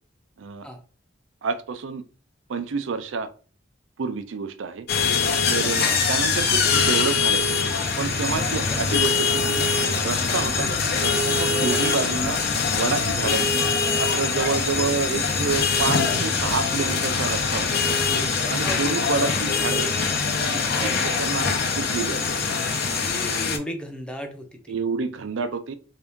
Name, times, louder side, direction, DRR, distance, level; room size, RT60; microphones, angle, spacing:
voice 1, 1.4-2.0 2.5-3.3 4.0-4.9 5.5-7.6 8.0-9.6 9.9-10.7 11.0-12.4 12.7-13.7 14.0-18.0 18.5-19.9 20.4-20.9 21.2-22.4 24.7-25.7, right 5 dB, 85° right, 10 dB, 0.5 m, -29 dB
sound 1, 4.9-23.6, left 4 dB, 55° left, 0.7 m, -23 dB
voice 2, 5.6-6.0 8.5-8.8 11.6-11.8 18.5-19.3 20.8-21.0 23.4-24.8, equal, 5° left, 4 dB, 0.6 m, -35 dB
3.4 x 2.8 x 3.5 m, 0.38 s
head